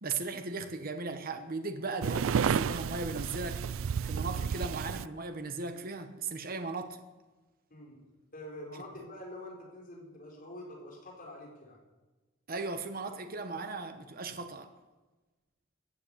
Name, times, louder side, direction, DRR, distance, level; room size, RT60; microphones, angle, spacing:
voice 1, 0.0-3.6 4.0-7.0 12.5-14.7, right 3 dB, 45° right, 7 dB, 1.0 m, -37 dB
sound 1, 2.0-5.0, right 7 dB, 75° right, 0.4 m, -31 dB
voice 2, 7.7-8.0 8.3-11.8, left 1 dB, 40° left, -2 dB, 4.4 m, -46 dB
15.0 x 8.8 x 8.4 m, 1.2 s
head